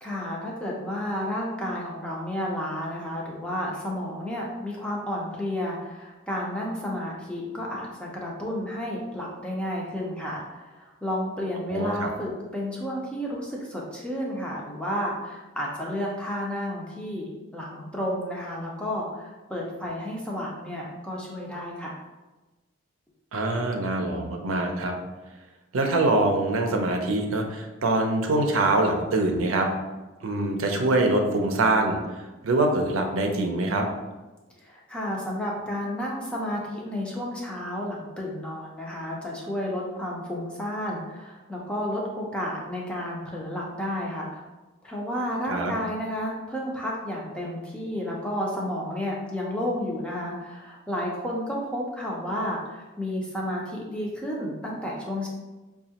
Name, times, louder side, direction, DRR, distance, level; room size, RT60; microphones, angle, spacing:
voice 1, 0.0-22.0 34.6-44.5 44.8-55.3, left 1 dB, 5° left, -4 dB, 0.5 m, -31 dB
voice 2, 11.7-12.1 23.3-24.9 25.7-29.7 30.2-33.9 45.5-45.7, right 2 dB, 85° right, 3 dB, 0.5 m, -24 dB
5.0 x 2.3 x 2.8 m, 1.1 s
head